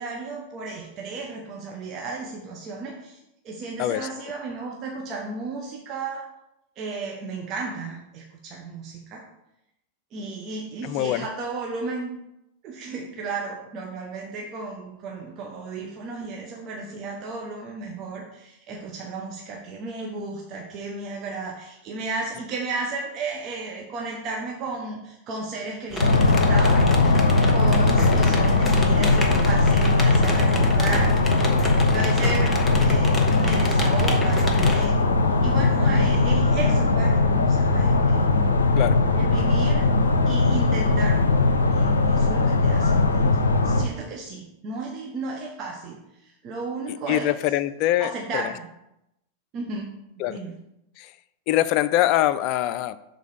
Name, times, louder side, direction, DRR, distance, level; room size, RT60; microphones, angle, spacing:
voice 1, 0.0-3.2 3.4-6.3 6.8-9.2 10.1-12.2 12.6-31.2 31.9-38.2 39.1-39.9 40.3-41.2 41.7-47.4 48.0-48.7 49.5-49.9 50.3-50.5, right 3 dB, 35° right, 0 dB, 1.0 m, -34 dB
voice 2, 10.8-11.3 28.3-28.5 38.8-39.0 47.1-48.5 50.2-50.4 51.0-51.1 51.5-53.0, left 13 dB, 45° left, 15 dB, 0.4 m, -23 dB
sound 1, 25.9-34.9, left 1 dB, 10° left, 1.1 m, -31 dB
sound 2, 26.0-43.8, left 2 dB, 70° left, 0.7 m, -19 dB
6.6 x 4.0 x 6.5 m, 0.86 s
figure-of-eight pair, 90°, 0 cm